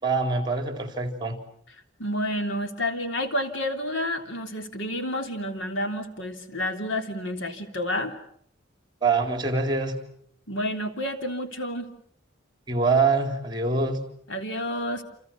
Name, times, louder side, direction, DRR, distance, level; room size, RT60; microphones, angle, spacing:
voice 1, 0.0-1.4 9.0-10.0 12.7-14.0, right 4 dB, 20° right, 7 dB, 3.8 m, -24 dB
voice 2, 2.0-8.1 10.5-11.9 14.3-15.0, left 1 dB, 70° left, 6 dB, 3.3 m, -30 dB
29.0 x 28.0 x 6.2 m, 0.65 s
head